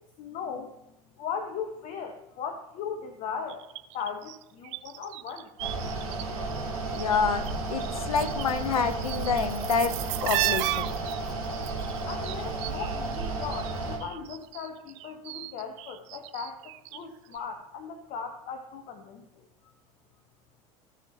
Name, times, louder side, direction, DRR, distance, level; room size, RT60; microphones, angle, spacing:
voice 1, 0.2-0.8 1.2-3.6 3.9-5.5 12.1-19.2, left 6 dB, 45° left, 5 dB, 1.1 m, -38 dB
sound 1, 3.5-6.2 6.5-7.5 7.8-13.7 14.0-17.0 17.3-17.4, right 16 dB, 55° right, 0.5 m, -35 dB
Mechanical fan, 5.6-14.0, right 2 dB, 80° right, 3.0 m, -33 dB
voice 2, 7.0-7.4 7.7-9.9 10.2-10.9, left 5 dB, 75° left, 9 dB, 1.0 m, -27 dB
17.0 x 6.6 x 2.8 m, 0.91 s
figure-of-eight pair, 75°, 19 cm